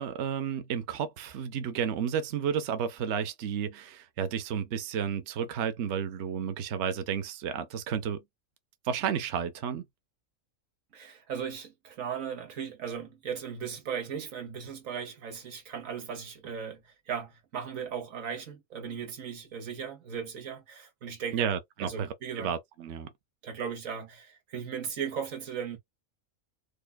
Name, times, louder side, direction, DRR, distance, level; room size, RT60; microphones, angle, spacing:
voice 1, 0.0-8.2 8.8-9.8 21.3-23.1, right 8 dB, 65° right, 0.9 m, -32 dB
voice 2, 10.9-21.5 21.8-22.5 23.4-25.8, right 7 dB, 85° right, 1.5 m, -37 dB
4.8 x 2.2 x 2.3 m
omnidirectional pair, 1.4 m